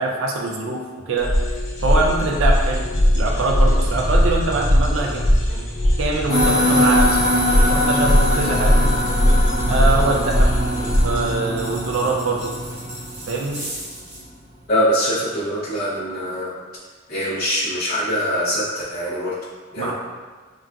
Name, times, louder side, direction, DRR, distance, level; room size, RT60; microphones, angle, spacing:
voice 1, 0.0-1.4 1.8-2.9 3.1-5.3 5.5-5.6 6.0-7.2 7.5-8.9 9.7-10.5 11.0-12.5 13.3-13.6 19.8-19.9, right 3 dB, 70° right, 0 dB, 0.3 m, -23 dB
sound 1, 1.2-11.3, equal, 60° left, 0.9 m, -19 dB
sound 2, 6.3-13.9, left 1 dB, 15° left, 0.9 m, -22 dB
sound 3, 11.5-14.3, right 1 dB, 30° right, 0.7 m, -36 dB
voice 2, 14.7-16.5 17.1-19.4 19.7-19.9, equal, 40° left, -12 dB, 0.5 m, -23 dB
3.7 x 2.3 x 2.3 m, 1.4 s
head